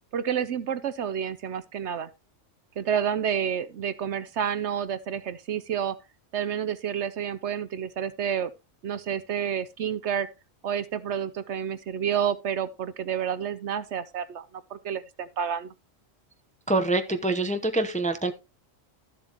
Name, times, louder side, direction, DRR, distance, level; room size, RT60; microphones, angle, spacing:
voice 1, 0.1-2.1 2.8-6.0 6.3-8.5 8.8-10.3 10.6-14.5 14.7-15.7, right 8 dB, 65° right, 0.9 m, -29 dB
voice 2, 16.7-18.3, right 2 dB, 5° left, 0.7 m, -25 dB
13.0 x 7.6 x 3.0 m
omnidirectional pair, 1.3 m